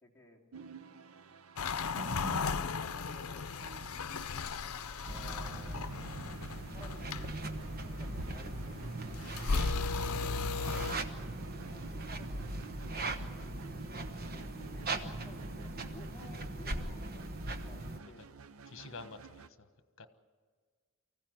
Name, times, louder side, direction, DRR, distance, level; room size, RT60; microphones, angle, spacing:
voice 1, 0.0-0.4 1.7-2.2 2.7-3.5 5.1-5.9 6.7-7.3 7.6-9.2 10.2-11.1 11.5-13.1 14.2-18.2, left 2 dB, 10° left, -4 dB, 3.2 m, -56 dB
sound 1, 0.5-19.5, right 4 dB, 70° right, 0.6 m, -52 dB
sound 2, 1.6-11.0, left 4 dB, 85° left, 0.7 m, -37 dB
sound 3, 5.0-18.0, right 2 dB, 45° right, 1.1 m, -40 dB
voice 2, 18.6-19.7 20.0-20.1, left 4 dB, 60° left, 9 dB, 1.3 m, -50 dB
24.5 x 15.5 x 9.3 m, 1.6 s
head